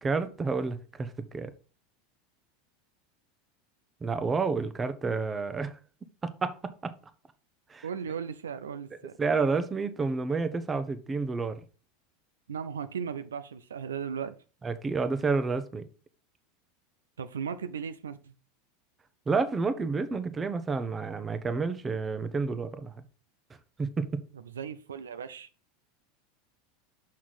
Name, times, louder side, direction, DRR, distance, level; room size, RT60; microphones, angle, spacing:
voice 1, 0.0-1.5 4.0-5.8 6.2-7.0 7.7-7.8 9.2-11.6 14.6-15.8 19.3-22.9 23.8-24.1, right 4 dB, 20° right, 0.9 m, -30 dB
voice 2, 7.8-9.2 12.5-14.3 17.2-18.3 24.3-25.5, right 7 dB, 80° right, 0.5 m, -36 dB
6.4 x 5.9 x 4.1 m
hypercardioid pair, 85°, 0 cm